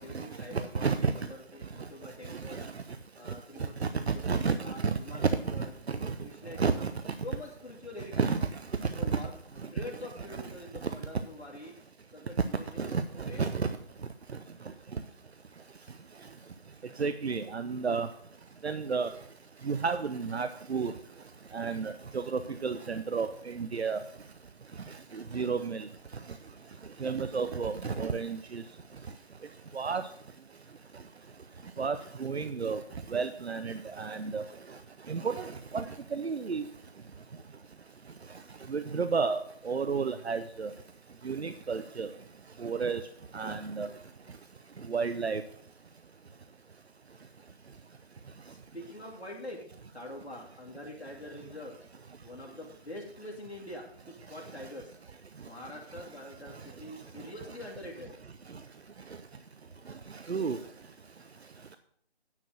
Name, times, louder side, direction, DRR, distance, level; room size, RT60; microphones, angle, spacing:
voice 1, 0.0-2.7 3.2-5.7 6.2-6.8 7.2-8.3 9.0-11.7 12.1-12.9 13.2-13.5 47.6-47.7 48.5-51.8 52.2-54.9 55.4-58.1 61.4-61.5, left 1 dB, 80° left, -2 dB, 2.5 m, -45 dB
voice 2, 0.7-1.1 2.3-2.7 4.1-4.6 4.8-4.9 5.9-6.1 6.6-6.9 8.1-8.4 9.1-9.2 12.8-13.0 13.4-13.7 17.0-18.1 18.6-19.1 19.7-20.9 21.5-24.0 25.1-25.8 27.0-28.6 29.7-30.0 31.8-32.8 33.1-34.4 35.1-35.5 35.7-35.8 36.1-36.6 38.7-40.7 41.2-42.1 42.6-43.0 43.3-43.9 44.9-45.4 60.3-60.6, right 5 dB, 80° right, 11 dB, 0.7 m, -31 dB
9.7 x 4.5 x 7.5 m, 0.63 s
figure-of-eight pair, 165°, 32 cm